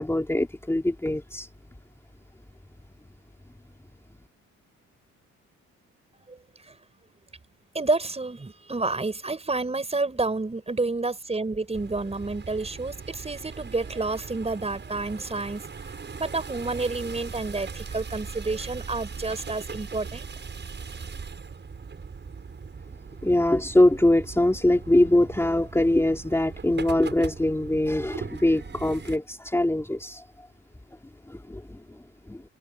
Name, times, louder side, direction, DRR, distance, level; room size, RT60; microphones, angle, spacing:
voice 1, 0.0-1.5 23.2-30.2 31.3-31.8 32.3-32.4, left 1 dB, 10° left, 3.3 m, -23 dB
voice 2, 7.7-15.6 16.1-20.3, right 3 dB, 20° right, 5.7 m, -29 dB
sound 1, 11.7-29.2, right 5 dB, 35° right, 6.6 m, -39 dB
cardioid pair, 90°, 30 cm